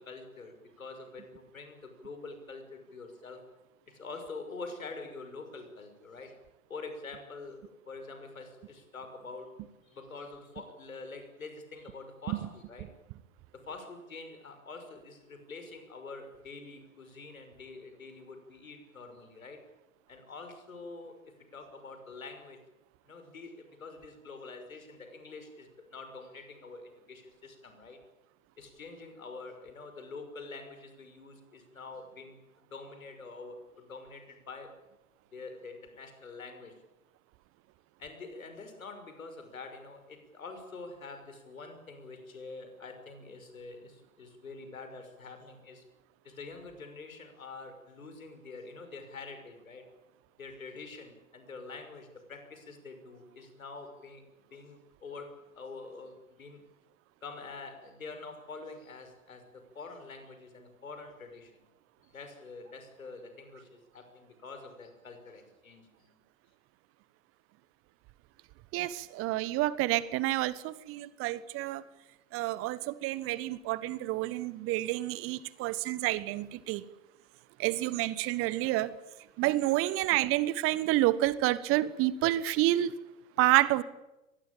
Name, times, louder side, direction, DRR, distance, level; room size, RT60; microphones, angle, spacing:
voice 1, 0.0-3.4 3.9-6.4 6.7-12.9 13.5-19.6 20.1-22.6 23.1-28.0 28.6-34.8 35.3-36.8 38.0-45.8 46.2-49.9 50.4-54.2 54.5-56.6 57.2-61.6 62.1-66.1, left 3 dB, 80° left, 8 dB, 6.1 m, -46 dB
voice 2, 68.7-71.8 72.3-76.8 77.6-78.9 79.4-82.9 83.4-83.8, right 16 dB, 35° right, 18 dB, 1.3 m, -29 dB
24.0 x 20.5 x 9.0 m, 0.95 s
figure-of-eight pair, 100°, 41 cm